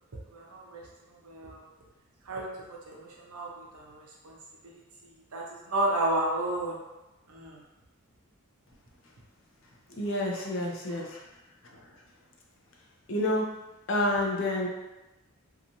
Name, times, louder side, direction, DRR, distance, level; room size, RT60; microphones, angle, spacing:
voice 1, 0.3-0.8 1.1-1.6 2.3-4.4 4.6-4.7 5.3-6.8 7.3-7.6 10.9-11.0, right 1 dB, 90° right, -2 dB, 0.7 m, -32 dB
voice 2, 10.0-11.2 13.1-13.5 13.9-14.7, left 1 dB, 60° left, -1 dB, 0.5 m, -28 dB
2.9 x 2.3 x 2.6 m, 1.0 s
head